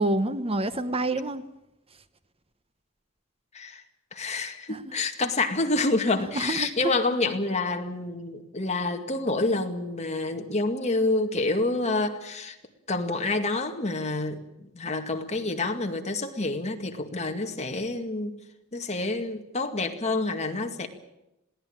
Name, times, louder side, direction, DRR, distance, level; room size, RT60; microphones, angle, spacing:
voice 1, 0.0-1.4 4.7-4.9 6.3-6.7, right 2 dB, 30° right, 11 dB, 0.9 m, -27 dB
voice 2, 4.1-12.6 12.9-14.4 14.7-18.3 18.7-20.9, left 2 dB, 30° left, 4 dB, 2.2 m, -28 dB
21.5 x 17.0 x 8.9 m, 0.90 s
head